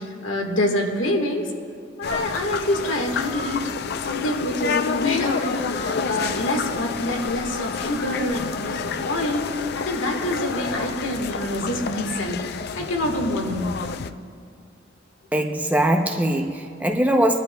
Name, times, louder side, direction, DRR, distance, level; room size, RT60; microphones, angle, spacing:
voice 1, 0.0-1.5 2.0-3.7 4.0-9.5 9.7-12.4 12.7-13.7, left 1 dB, 80° left, 2 dB, 1.5 m, -26 dB
sound 1, 2.0-14.1, left 5 dB, 55° left, 0.4 m, -29 dB
voice 2, 15.3-17.4, right 1 dB, 10° right, 4 dB, 0.6 m, -21 dB
25.0 x 11.5 x 2.3 m, 2.3 s
head